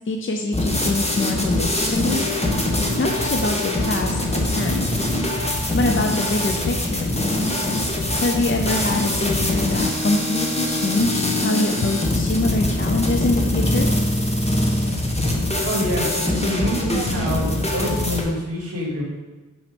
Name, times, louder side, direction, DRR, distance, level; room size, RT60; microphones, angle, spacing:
voice 1, 0.1-2.2 3.0-4.9 5.7-7.2 8.2-13.9, left 2 dB, 40° left, 3 dB, 0.6 m, -24 dB
sound 1, 0.5-18.2, left 1 dB, 20° left, 1.3 m, -23 dB
voice 2, 15.6-19.0, equal, 45° right, -3 dB, 2.6 m, -26 dB
6.3 x 6.2 x 5.2 m, 1.2 s
wide cardioid pair, 105°, 32 cm